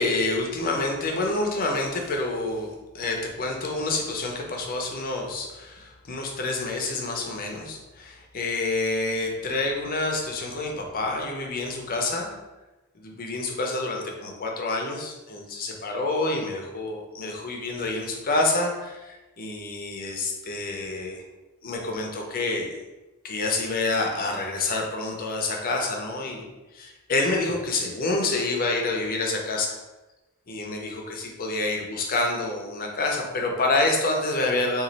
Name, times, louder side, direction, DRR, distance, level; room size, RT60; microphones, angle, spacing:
voice 1, 0.0-2.7 2.9-12.3 12.9-21.2 21.6-22.8 23.2-26.5 26.7-29.8 30.5-34.8, left 2 dB, 40° left, 1 dB, 0.5 m, -28 dB
3.0 x 2.4 x 3.9 m, 1.1 s
head